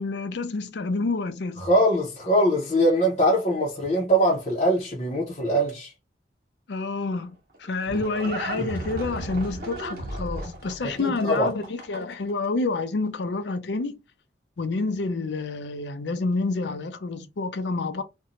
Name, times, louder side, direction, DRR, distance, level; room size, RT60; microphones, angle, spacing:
voice 1, 0.0-1.7 6.7-14.0 14.6-18.0, left 3 dB, 85° left, 0.5 m, -28 dB
voice 2, 1.6-5.9 10.8-11.5, equal, 35° left, 0.6 m, -22 dB
Livestock farm animals working animals, 7.2-12.3, right 1 dB, 55° right, 1.0 m, -35 dB
2.5 x 2.2 x 2.8 m
head